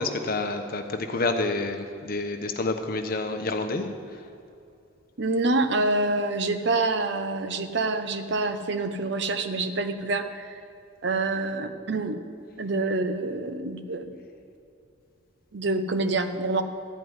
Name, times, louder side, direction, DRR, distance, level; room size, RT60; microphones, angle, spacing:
voice 1, 0.0-3.8 4.1-4.2, left 3 dB, 45° left, 5 dB, 1.0 m, -28 dB
voice 2, 5.2-10.5 11.0-12.2 12.6-14.2 15.5-16.6, right 2 dB, 60° right, 8 dB, 0.8 m, -26 dB
13.5 x 5.4 x 9.5 m, 2.6 s
head